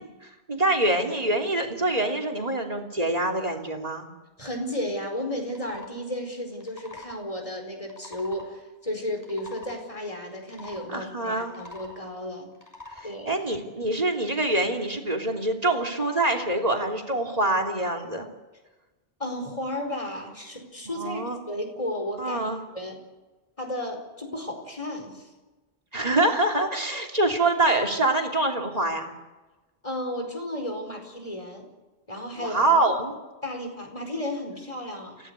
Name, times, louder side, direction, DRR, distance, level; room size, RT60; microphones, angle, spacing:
voice 1, 0.0-4.1 10.9-11.6 13.0-18.3 20.9-21.4 22.2-22.6 25.9-29.1 32.4-33.1, right 2 dB, 40° right, 2 dB, 3.1 m, -25 dB
voice 2, 4.4-12.5 13.0-13.4 19.2-22.5 22.7-23.0 23.6-25.2 29.8-31.7 32.1-32.8 33.4-35.2, left 1 dB, 35° left, 4 dB, 4.9 m, -33 dB
sound 1, 5.4-5.9 6.5-7.2 7.8-8.5 9.1-9.8 10.4-10.9 11.4-12.0 12.5-13.1, left 2 dB, 15° left, 6.4 m, -44 dB
30.0 x 16.5 x 8.3 m, 1.2 s
omnidirectional pair, 1.0 m